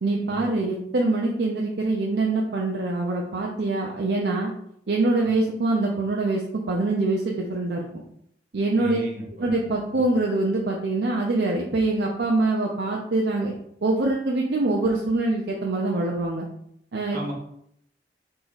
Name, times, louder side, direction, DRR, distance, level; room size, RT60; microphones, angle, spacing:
voice 1, 0.0-4.5 4.9-8.0 8.5-9.0 9.4-13.5 13.8-16.5 16.9-17.2, right 2 dB, 70° right, -1 dB, 0.5 m, -24 dB
voice 2, 8.7-9.5 17.1-17.3, equal, 50° right, -3 dB, 1.4 m, -35 dB
3.7 x 2.9 x 4.0 m, 0.71 s
head